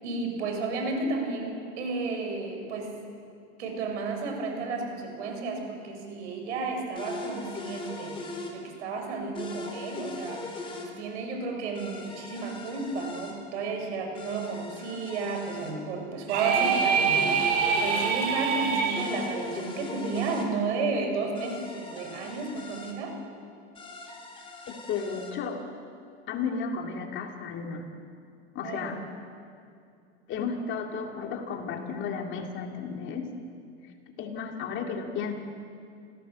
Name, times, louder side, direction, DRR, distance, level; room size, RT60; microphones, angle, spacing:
voice 1, 0.0-2.9 3.6-8.2 8.5-10.4 10.8-23.2 28.6-29.0, right 3 dB, 80° right, 3 dB, 6.3 m, -32 dB
sound 1, 7.0-8.6 9.4-10.9 11.8-13.4 14.2-15.7 16.6-18.1 19.0-20.5 21.4-23.0 23.8-25.3, left 2 dB, 15° left, 3.7 m, -40 dB
sound 2, 16.3-19.1, right 6 dB, 55° right, 3.9 m, -25 dB
voice 2, 24.7-25.7 26.3-27.9 28.5-29.0 30.3-33.3 34.2-35.3, left 5 dB, 35° left, 3 dB, 2.5 m, -33 dB
28.0 x 17.0 x 7.6 m, 2.4 s
supercardioid pair, 140°, 34 cm